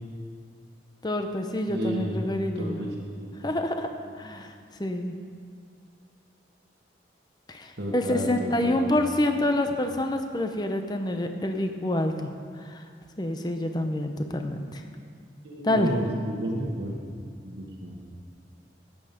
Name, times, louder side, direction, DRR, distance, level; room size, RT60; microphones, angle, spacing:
voice 1, 1.0-2.8 3.4-3.9 4.2-4.5 4.8-5.1 7.5-12.3 12.6-12.8 13.2-14.8 15.6-16.0, left 1 dB, 20° left, 6 dB, 0.7 m, -27 dB
voice 2, 1.7-2.2 2.5-2.9 3.2-3.3 7.8-8.9 15.4-17.0 17.4-18.0, right 1 dB, 65° right, -2 dB, 1.3 m, -32 dB
13.0 x 8.7 x 5.1 m, 2.2 s
head